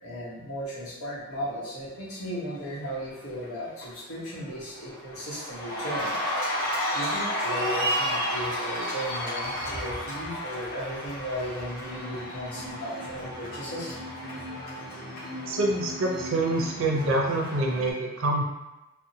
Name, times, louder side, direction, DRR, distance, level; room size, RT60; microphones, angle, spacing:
voice 1, 0.0-6.1 6.9-13.9, equal, 75° left, -7 dB, 1.0 m, -36 dB
Cheering, 3.0-3.4 3.8-17.9, equal, 40° left, 0.9 m, -32 dB
voice 2, 15.5-18.4, right 2 dB, 65° right, -1 dB, 0.5 m, -26 dB
2.6 x 2.1 x 2.7 m, 1.0 s
head